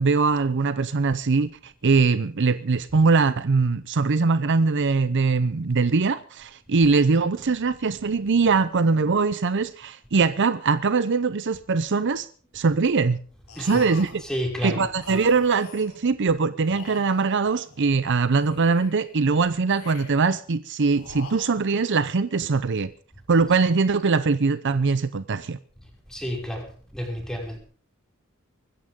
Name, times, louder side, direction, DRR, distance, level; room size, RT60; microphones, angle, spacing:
voice 1, 0.0-12.3 12.5-13.2 13.6-14.2 14.6-22.9 23.3-25.6, right 4 dB, 55° right, 0.6 m, -22 dB
sound 1, 13.5-14.3 15.0-16.1 16.6-18.0 18.4-19.2 19.7-20.4 20.9-21.9, left 4 dB, 85° left, 3.6 m, -44 dB
voice 2, 14.2-14.9 26.1-27.6, equal, 5° left, 5.8 m, -30 dB
24.0 x 14.0 x 3.7 m
head